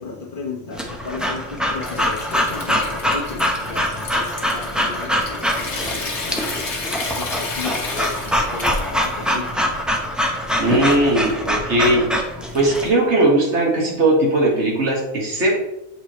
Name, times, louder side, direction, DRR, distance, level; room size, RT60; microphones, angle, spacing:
voice 1, 0.0-6.6 7.1-9.7, left 4 dB, 50° left, 1 dB, 1.2 m, -34 dB
Breathing / Dog, 0.7-12.9, equal, ahead, 0.5 m, -24 dB
Water tap faucet / Sink (filling or washing) / Trickle dribble, 1.4-11.3, left 3 dB, 70° left, 1.5 m, -33 dB
voice 2, 10.6-12.0 12.5-15.5, right 1 dB, 70° right, -2 dB, 1.9 m, -18 dB
7.9 x 4.5 x 3.0 m, 0.88 s
omnidirectional pair, 1.2 m